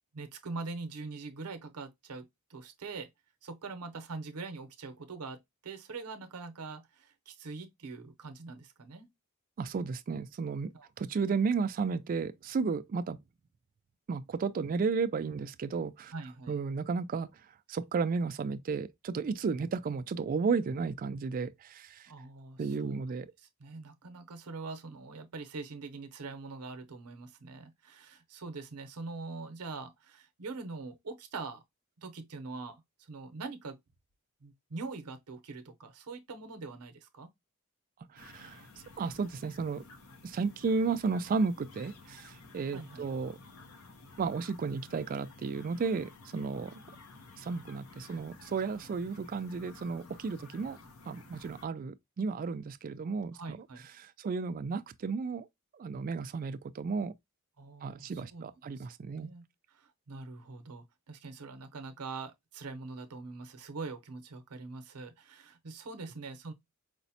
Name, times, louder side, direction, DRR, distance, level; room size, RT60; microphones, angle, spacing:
voice 1, 0.1-3.1 3.4-9.1 10.7-10.9 16.1-16.6 22.1-23.0 23.6-31.6 32.0-32.8 33.1-33.8 34.4-37.3 42.7-43.0 53.3-53.9 57.6-58.9 59.2-66.5, right 3 dB, 85° right, 0.7 m, -43 dB
voice 2, 9.6-10.7 11.0-13.2 14.1-16.1 16.5-17.3 17.7-22.1 22.6-23.3 38.1-38.6 39.0-39.8 40.2-43.4 44.2-46.7 47.4-50.8 51.1-53.4 54.0-55.5 55.8-57.1 57.8-59.3, right 4 dB, 40° right, 0.3 m, -33 dB
sound 1, 38.2-51.7, left 3 dB, 65° left, 0.7 m, -53 dB
5.0 x 2.0 x 2.7 m
head